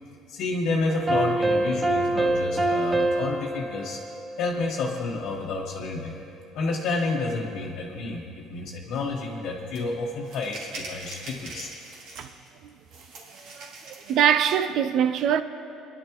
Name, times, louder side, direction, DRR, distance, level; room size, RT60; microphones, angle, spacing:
voice 1, 0.3-4.0 4.4-6.2 6.5-11.7, left 3 dB, 55° left, 1.1 m, -30 dB
sound 1, 0.9-5.1, right 2 dB, 15° right, 1.0 m, -26 dB
sound 2, 9.7-9.8 10.2-12.5 12.9-14.3, right 3 dB, 70° right, 3.0 m, -42 dB
voice 2, 14.1-15.4, right 8 dB, 55° right, 0.5 m, -22 dB
26.0 x 11.0 x 3.0 m
cardioid pair, 155°, 0 cm